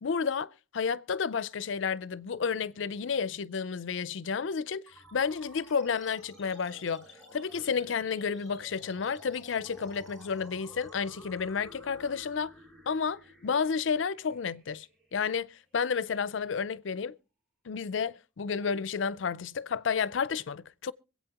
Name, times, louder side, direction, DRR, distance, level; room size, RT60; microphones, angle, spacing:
voice 1, 0.0-4.8 5.1-7.1 7.3-12.5 12.9-14.9 15.1-17.1 17.7-20.9, left 6 dB, 75° left, 0.5 m, -31 dB
sound 1, 4.9-15.8, right 1 dB, 5° left, 7.2 m, -53 dB
25.5 x 8.5 x 2.9 m
head